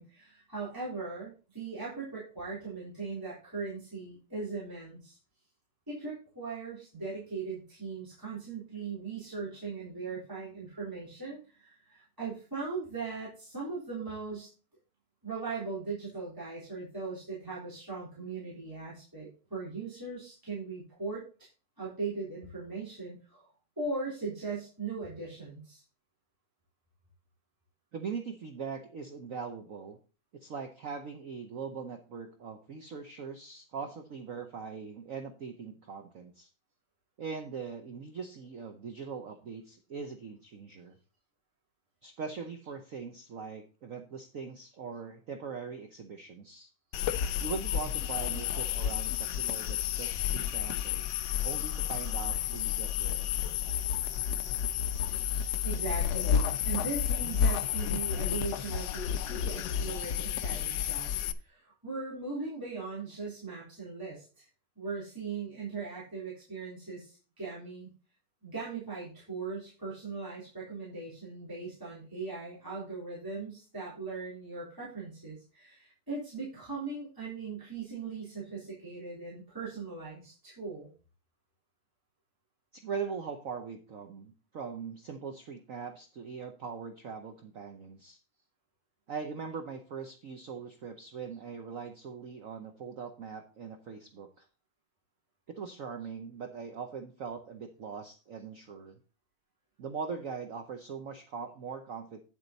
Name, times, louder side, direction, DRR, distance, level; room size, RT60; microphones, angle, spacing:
voice 1, 0.0-5.2 5.9-14.5 15.2-21.5 21.8-23.5 23.8-25.8 55.6-61.1 61.4-64.5 64.8-67.9 68.4-80.9, right 4 dB, 10° right, -8 dB, 3.9 m, -39 dB
voice 2, 27.9-30.0 30.3-36.5 37.2-40.9 42.0-46.7 47.4-51.1 51.4-53.3 82.7-88.2 89.1-94.5 95.5-99.0 99.8-102.2, right 5 dB, 55° right, 6 dB, 1.0 m, -41 dB
sound 1, 46.9-61.3, left 9 dB, 70° left, 1.0 m, -31 dB
9.4 x 7.6 x 4.0 m, 0.35 s
omnidirectional pair, 2.2 m